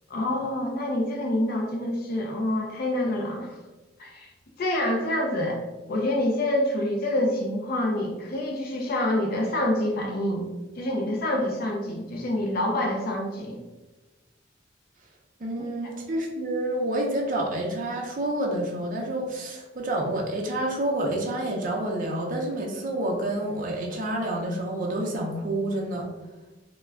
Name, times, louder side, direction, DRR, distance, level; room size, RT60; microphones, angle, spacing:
voice 1, 0.1-3.5 4.0-4.3 4.6-5.6 5.9-10.5 10.8-13.6 15.8-15.9, left 1 dB, 50° left, 0 dB, 0.4 m, -27 dB
voice 2, 15.4-26.1, right 1 dB, 45° right, -1 dB, 0.5 m, -28 dB
2.2 x 2.2 x 3.4 m, 1.1 s
head